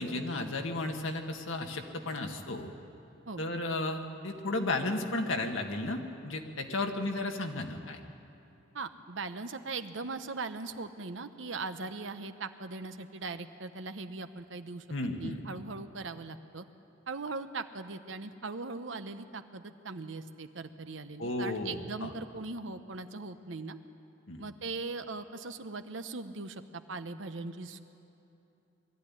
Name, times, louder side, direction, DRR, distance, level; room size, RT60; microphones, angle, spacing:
voice 1, 0.0-2.7 3.4-8.0 14.9-15.4 21.2-22.1 24.3-24.4, left 2 dB, 80° left, 4 dB, 1.7 m, -34 dB
voice 2, 8.7-14.8 15.2-16.7 17.1-23.8 24.4-27.8, right 3 dB, 75° right, 9 dB, 0.9 m, -40 dB
21.5 x 14.0 x 9.8 m, 2.9 s
head